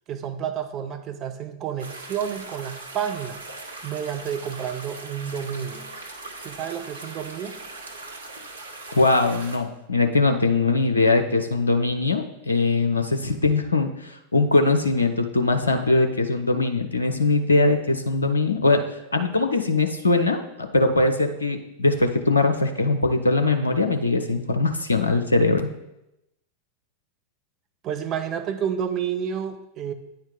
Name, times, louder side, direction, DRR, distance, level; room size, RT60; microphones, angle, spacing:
voice 1, 0.1-3.4 3.8-5.9 6.4-7.6 27.8-29.9, right 8 dB, 35° right, 7 dB, 0.7 m, -30 dB
sound 1, 1.8-9.6, right 2 dB, 75° right, 0.9 m, -40 dB
voice 2, 8.9-18.8 19.1-25.7, left 3 dB, 75° left, 6 dB, 0.5 m, -21 dB
9.1 x 4.5 x 3.8 m, 0.90 s
figure-of-eight pair, 90°, 0 cm